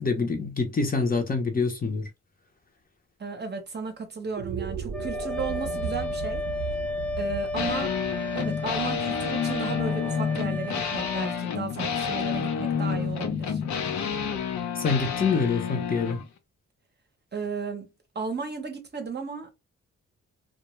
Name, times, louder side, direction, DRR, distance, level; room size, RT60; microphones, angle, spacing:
voice 1, 0.0-2.1 14.8-16.2, left 4 dB, 30° left, 0.7 m, -26 dB
voice 2, 3.2-6.4 7.2-8.0 8.3-13.6 17.3-17.9 18.1-19.5, right 5 dB, 35° right, 0.7 m, -34 dB
sound 1, 4.2-10.6, right 7 dB, 70° right, 0.5 m, -36 dB
Wind instrument woodwind instrument, 4.9-11.5, left 2 dB, 5° left, 0.3 m, -34 dB
sound 2, 7.5-16.2, left 7 dB, 70° left, 0.6 m, -29 dB
2.2 x 2.1 x 3.0 m
cardioid pair, 90°, 30 cm